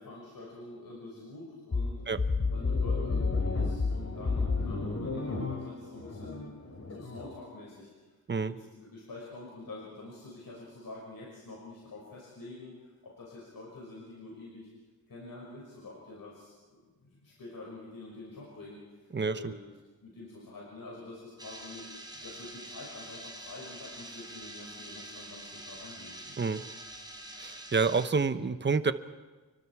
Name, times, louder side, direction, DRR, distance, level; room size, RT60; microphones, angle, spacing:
voice 1, 0.0-2.0 2.5-6.5 6.9-7.9 8.4-14.7 15.1-19.6 20.0-21.9 22.1-26.4, left 2 dB, 70° left, -4 dB, 6.0 m, -46 dB
sound 1, 1.7-7.4, left 4 dB, 45° left, 3.4 m, -31 dB
voice 2, 19.1-19.5 26.4-26.6 27.4-28.9, right 4 dB, 30° right, 11 dB, 0.9 m, -28 dB
sound 2, 21.4-28.1, right 1 dB, 10° right, 3.5 m, -46 dB
28.5 x 24.0 x 4.8 m, 1.3 s
wide cardioid pair, 115°, 36 cm